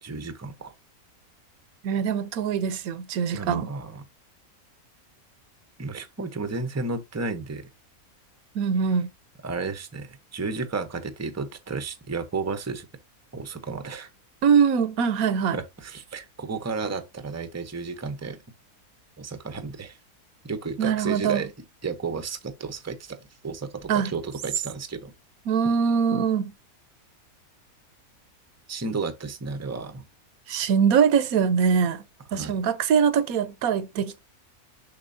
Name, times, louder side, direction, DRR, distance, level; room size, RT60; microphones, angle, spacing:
voice 1, 0.0-0.7 3.3-4.0 5.8-7.7 9.4-12.9 13.3-14.1 15.5-18.4 19.2-20.0 20.4-21.5 21.8-23.2 23.4-25.1 28.7-30.0 32.3-32.5, right 4 dB, 15° right, 0.6 m, -32 dB
voice 2, 1.8-3.7 8.5-9.1 14.4-15.6 20.8-21.4 23.9-24.1 25.5-26.5 30.5-32.0 32.3-34.2, right 7 dB, 75° right, 1.2 m, -23 dB
7.2 x 6.0 x 2.7 m
omnidirectional pair, 1.6 m